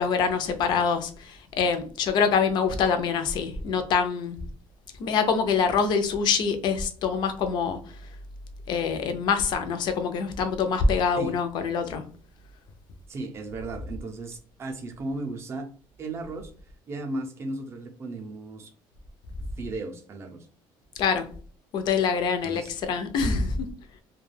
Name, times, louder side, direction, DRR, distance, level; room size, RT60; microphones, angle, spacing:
voice 1, 0.0-4.4 5.0-7.8 8.7-12.0 21.0-21.3 21.7-23.7, left 5 dB, 50° left, 7 dB, 0.5 m, -25 dB
voice 2, 13.1-15.7 16.0-16.5 16.9-18.7 19.6-20.5 22.4-22.7, right 2 dB, 30° right, 5 dB, 0.5 m, -35 dB
2.3 x 2.2 x 3.2 m, 0.43 s
cardioid pair, 160°, 10 cm